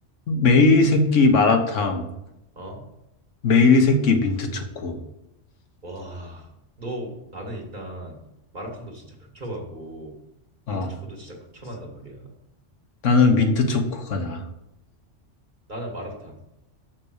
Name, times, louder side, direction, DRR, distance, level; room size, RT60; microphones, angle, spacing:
voice 1, 0.3-2.0 3.4-5.0 10.7-10.9 13.0-14.4, left 3 dB, 90° left, 5 dB, 1.4 m, -19 dB
voice 2, 2.5-2.8 5.8-6.5 6.8-8.2 8.5-10.2 10.7-12.3 15.7-16.4, right 1 dB, 40° right, -1 dB, 2.0 m, -37 dB
6.7 x 5.9 x 6.4 m, 0.87 s
omnidirectional pair, 1.2 m